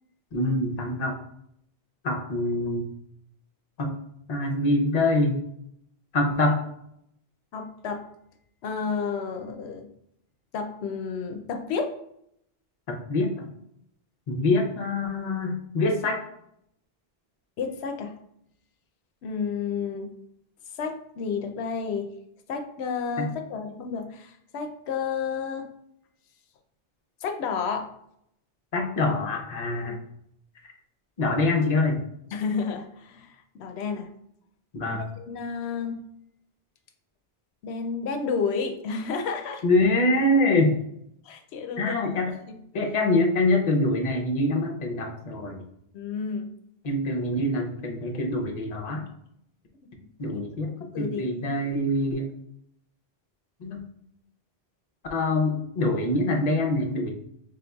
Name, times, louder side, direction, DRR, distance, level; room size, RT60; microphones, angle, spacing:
voice 1, 0.3-1.2 2.0-2.9 3.8-3.9 4.3-5.4 6.1-6.6 12.9-13.5 14.3-16.2 23.2-23.3 28.7-30.0 31.2-32.0 34.7-35.0 39.6-40.7 41.8-42.3 42.7-45.6 46.8-49.0 50.2-52.3 53.6-53.9 55.1-57.1, left 2 dB, 45° left, 2 dB, 0.7 m, -25 dB
voice 2, 7.5-8.0 8.6-9.9 10.5-11.9 17.6-18.1 19.2-20.1 20.7-22.1 22.5-25.7 27.2-27.9 29.8-30.0 32.3-34.1 34.9-36.0 37.6-39.6 41.2-42.1 42.4-42.5 45.9-46.5 50.3-50.4 50.9-51.5, left 5 dB, 90° left, 5 dB, 0.8 m, -31 dB
5.2 x 3.5 x 2.3 m, 0.75 s
omnidirectional pair, 1.1 m